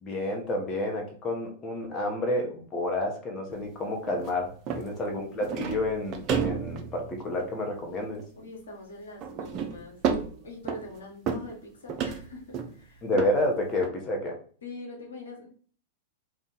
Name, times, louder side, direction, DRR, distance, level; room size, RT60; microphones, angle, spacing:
voice 1, 0.0-8.2 13.0-14.4, left 1 dB, 25° left, 1 dB, 0.9 m, -30 dB
sound 1, 3.5-3.6 4.1-4.4 4.7-5.0 5.4-7.8 8.2-8.3 9.2-11.0 11.3-11.6 11.9-12.7 13.1-13.4 13.8-13.9, right 6 dB, 40° right, 0.5 m, -31 dB
voice 2, 4.9-5.4 8.3-10.0 10.4-13.1 14.6-15.5, left 2 dB, 75° left, 0 dB, 1.0 m, -44 dB
2.6 x 2.3 x 3.8 m, 0.43 s
hypercardioid pair, 100°, 0 cm